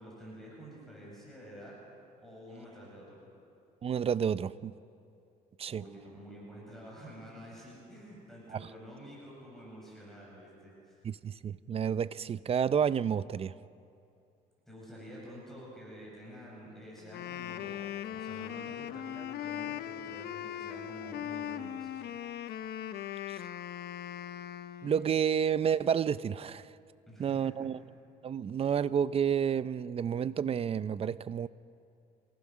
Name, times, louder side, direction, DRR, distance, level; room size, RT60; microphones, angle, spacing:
voice 1, 0.0-1.7 2.2-3.3 5.7-11.0 14.7-22.1 27.1-27.5, equal, ahead, 7.8 m, -49 dB
voice 2, 3.8-4.7 5.6-5.8 8.5-8.7 11.0-13.5 23.3-23.4 24.8-26.7 27.2-27.8 28.2-31.5, right 8 dB, 35° right, 0.5 m, -30 dB
Wind instrument woodwind instrument, 17.0-25.1, left 11 dB, 70° left, 0.9 m, -39 dB
27.0 x 19.0 x 6.3 m
cardioid pair, 110°, 17 cm